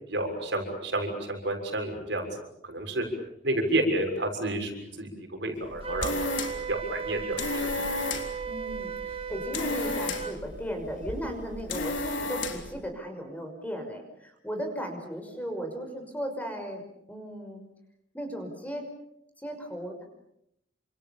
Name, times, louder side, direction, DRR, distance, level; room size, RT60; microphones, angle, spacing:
voice 1, 0.0-2.3 2.6-3.0 3.4-7.8, right 1 dB, 65° right, 4 dB, 6.6 m, -30 dB
sound 1, 5.6-12.8, left 3 dB, 75° left, 3.7 m, -34 dB
Wind instrument woodwind instrument, 5.8-10.4, right 6 dB, 30° right, 1.6 m, -36 dB
voice 2, 8.5-16.8 17.1-17.6 18.1-18.9 19.4-20.1, equal, 10° left, 4 dB, 5.6 m, -36 dB
29.5 x 27.0 x 7.2 m, 0.77 s
head